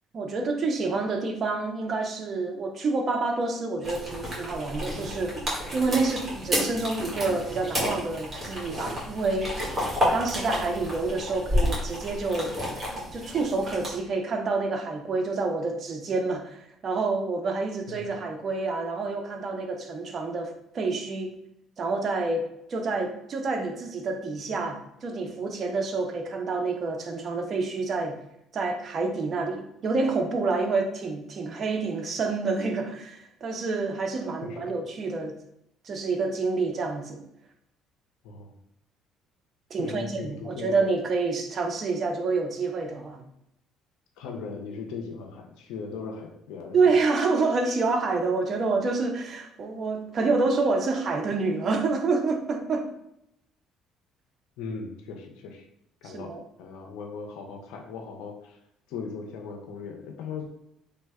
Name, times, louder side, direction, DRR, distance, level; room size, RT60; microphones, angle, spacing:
voice 1, 0.1-5.4 5.7-9.6 10.1-12.6 13.1-21.3 21.8-28.2 28.5-35.4 35.8-37.2 39.7-43.2 46.7-52.9 56.0-56.4, right 3 dB, 45° right, 4 dB, 0.5 m, -28 dB
sound 1, 3.8-14.0, equal, 30° right, 1.4 m, -30 dB
voice 2, 34.4-34.7 38.2-38.6 39.7-40.8 44.2-46.9 54.6-55.7 56.0-58.6 58.9-60.5, left 5 dB, 80° left, 3 dB, 0.4 m, -38 dB
3.2 x 2.1 x 3.4 m, 0.78 s
supercardioid pair, 80°, 0 cm